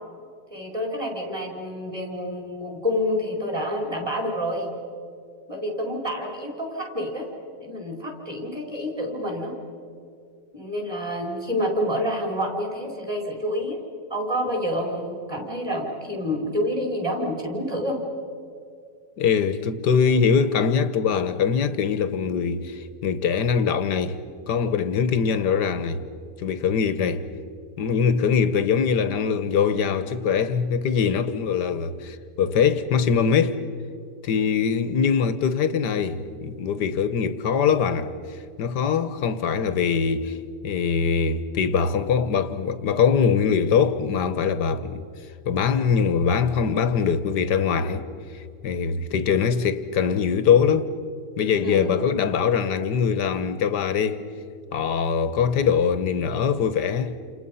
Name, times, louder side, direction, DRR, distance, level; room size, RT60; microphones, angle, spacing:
voice 1, 0.5-4.7 5.5-7.3 7.6-9.5 10.5-13.8 14.1-18.0 51.6-51.9, equal, 15° right, 5.0 m, -28 dB
voice 2, 19.2-24.2 24.5-26.0 26.4-27.3 27.8-33.6 34.2-38.1 38.6-40.3 40.6-45.0 45.5-48.1 48.3-50.9 51.4-54.3 54.7-57.2, left 6 dB, 70° left, 1.7 m, -22 dB
29.5 x 28.0 x 5.7 m
omnidirectional pair, 1.9 m